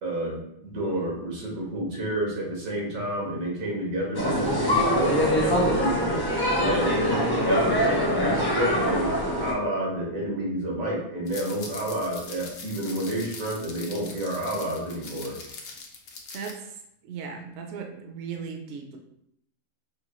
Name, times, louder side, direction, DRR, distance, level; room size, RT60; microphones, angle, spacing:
voice 1, 0.0-9.1 9.4-15.4, right 1 dB, 90° right, -2 dB, 1.6 m, -30 dB
sound 1, 4.1-9.5, equal, 25° left, 0.5 m, -24 dB
sound 2, 11.3-16.5, left 4 dB, 90° left, 1.1 m, -42 dB
voice 2, 16.3-19.0, right 6 dB, 65° right, 3 dB, 0.8 m, -37 dB
5.3 x 2.3 x 3.0 m, 0.75 s
omnidirectional pair, 1.4 m